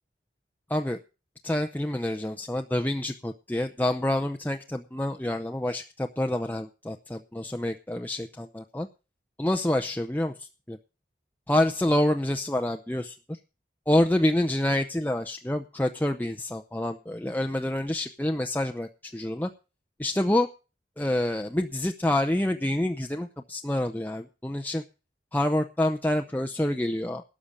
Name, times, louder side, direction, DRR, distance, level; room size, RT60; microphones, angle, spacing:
voice 1, 1.4-8.9 9.4-10.8 11.5-13.4 13.9-19.5 20.0-20.5 21.0-24.8 25.3-27.2, left 1 dB, 10° left, 5 dB, 0.7 m, -27 dB
13.0 x 8.5 x 6.6 m, 0.32 s
head